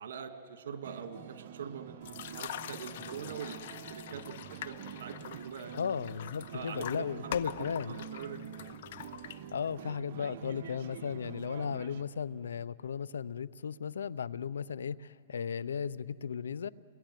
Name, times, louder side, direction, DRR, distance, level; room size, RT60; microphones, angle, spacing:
voice 1, 0.0-3.6 3.9-5.8 6.5-8.5 10.2-10.3 11.5-11.6, right 7 dB, 70° right, 7 dB, 2.3 m, -44 dB
sound 1, 0.8-12.0, right 9 dB, 55° right, 1.3 m, -47 dB
sound 2, 2.0-9.8, left 11 dB, 60° left, 0.8 m, -44 dB
voice 2, 5.7-8.0 9.5-16.7, left 7 dB, 90° left, 19 dB, 0.6 m, -36 dB
29.0 x 21.5 x 9.3 m, 2.4 s
hypercardioid pair, 145°, 0 cm